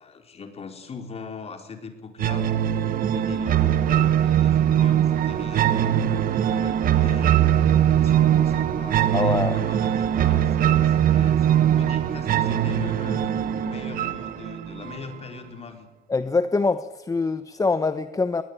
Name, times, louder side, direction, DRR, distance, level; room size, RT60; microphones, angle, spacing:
voice 1, 0.0-2.8 3.1-7.4 7.8-15.9, left 5 dB, 35° left, 5 dB, 4.5 m, -40 dB
sound 1, 2.2-15.2, right 10 dB, 55° right, 1.4 m, -21 dB
voice 2, 9.1-9.6 16.1-18.4, left 3 dB, 20° left, 10 dB, 1.0 m, -24 dB
21.0 x 20.5 x 9.2 m, 1.0 s
cardioid pair, 110°, 17 cm